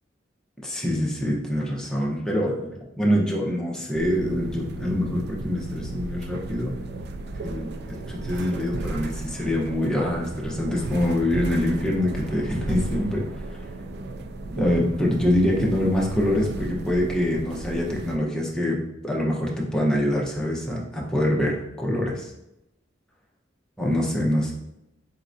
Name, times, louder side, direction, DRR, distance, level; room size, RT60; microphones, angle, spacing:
voice 1, 0.6-6.7 7.4-13.2 14.5-18.8 19.0-22.3 23.8-24.5, left 1 dB, 5° left, -3 dB, 0.8 m, -25 dB
sound 1, 3.9-18.2, right 2 dB, 60° right, 0.4 m, -35 dB
4.3 x 3.7 x 2.6 m, 0.91 s
head